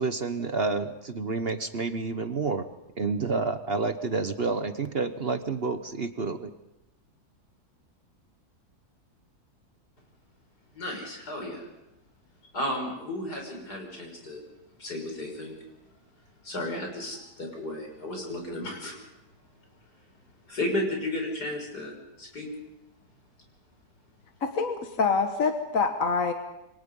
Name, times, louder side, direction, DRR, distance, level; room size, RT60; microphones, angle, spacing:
voice 1, 0.0-2.7 3.0-6.5, right 4 dB, 45° right, 9 dB, 1.2 m, -29 dB
voice 2, 10.7-11.6 12.5-14.4 14.8-15.6 16.4-19.0 20.5-22.5, left 1 dB, 85° left, 2 dB, 6.6 m, -33 dB
voice 3, 24.4-26.3, left 4 dB, 55° left, 5 dB, 1.8 m, -26 dB
28.0 x 24.0 x 5.5 m, 0.88 s
omnidirectional pair, 1.7 m